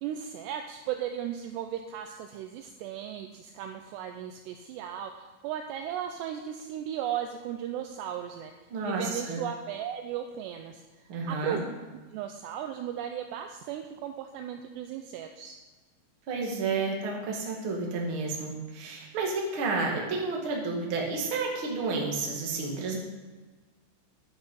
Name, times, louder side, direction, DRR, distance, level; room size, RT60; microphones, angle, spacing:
voice 1, 0.0-8.5 8.8-11.6 12.1-15.5, right 10 dB, 85° right, 5 dB, 2.5 m, -36 dB
voice 2, 8.7-9.4 11.1-11.6 16.3-23.0, right 3 dB, 45° right, -1 dB, 1.8 m, -31 dB
10.0 x 9.7 x 5.5 m, 1.3 s
omnidirectional pair, 5.4 m